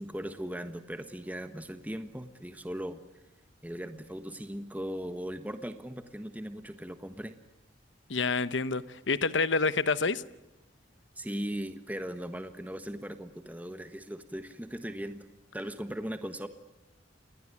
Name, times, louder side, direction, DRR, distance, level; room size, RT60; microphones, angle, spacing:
voice 1, 0.0-3.0 3.6-7.3 11.1-15.3 15.5-16.5, equal, 10° right, 1.3 m, -38 dB
voice 2, 8.1-10.2, left 4 dB, 85° left, 1.0 m, -28 dB
29.5 x 21.0 x 8.5 m
head